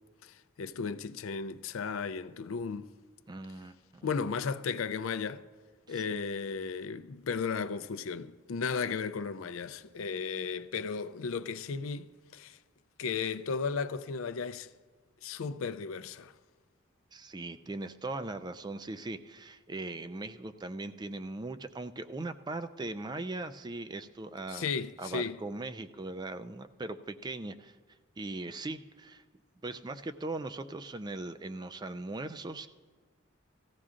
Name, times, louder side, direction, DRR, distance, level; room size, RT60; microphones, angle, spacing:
voice 1, 0.2-2.9 4.0-5.4 5.9-12.6 13.0-14.7 15.2-16.3 24.5-25.4, left 5 dB, 90° left, 0.5 m, -35 dB
voice 2, 3.3-4.1 5.9-6.0 17.1-24.7 25.0-27.8 28.2-29.2 29.6-32.7, right 2 dB, 20° right, 0.4 m, -39 dB
18.5 x 14.5 x 2.5 m
head